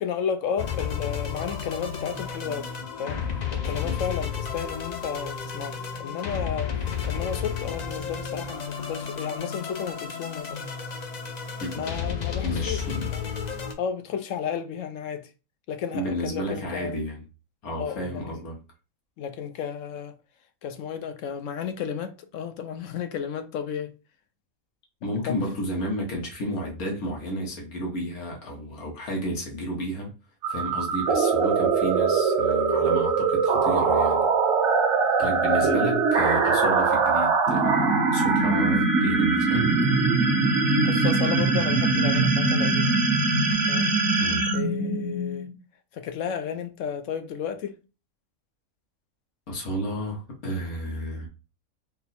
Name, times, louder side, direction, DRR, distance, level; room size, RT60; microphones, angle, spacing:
voice 1, 0.0-2.7 3.0-3.2 3.5-10.6 11.7-13.3 13.8-15.3 15.7-16.9 17.8-18.4 19.2-20.1 20.6-23.9 25.2-25.3 35.5-35.9 40.8-43.0 43.7-44.0 44.5-45.5 45.9-47.8, left 7 dB, 70° left, 0.9 m, -33 dB
sound 1, 0.6-13.7, left 7 dB, 45° left, 0.5 m, -32 dB
voice 2, 12.4-13.1 15.9-17.2 17.6-18.6 25.0-30.1 30.5-34.3 35.2-39.7 44.2-44.4 49.5-51.3, equal, 85° left, 1.6 m, -32 dB
sound 2, 30.4-45.6, right 4 dB, 60° right, 1.1 m, -22 dB
4.3 x 2.0 x 4.1 m
omnidirectional pair, 1.5 m